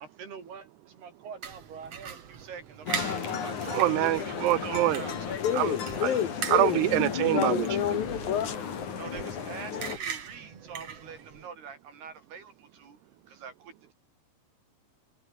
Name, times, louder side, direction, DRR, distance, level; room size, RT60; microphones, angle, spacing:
voice 1, 0.2-3.7 4.0-5.6 9.0-13.0 13.3-13.9, right 6 dB, 65° right, 6.4 m, -45 dB
sound 1, 1.4-11.5, right 7 dB, 40° right, 2.9 m, -41 dB
sound 2, 2.9-10.0, left 7 dB, 45° left, 4.1 m, -34 dB
voice 2, 3.7-5.0 5.6-5.7 6.0-6.1 6.5-7.7, right 17 dB, 85° right, 2.6 m, -25 dB
voice 3, 5.2-6.8 7.3-8.5, left 10 dB, 65° left, 2.9 m, -29 dB
omnidirectional pair, 5.1 m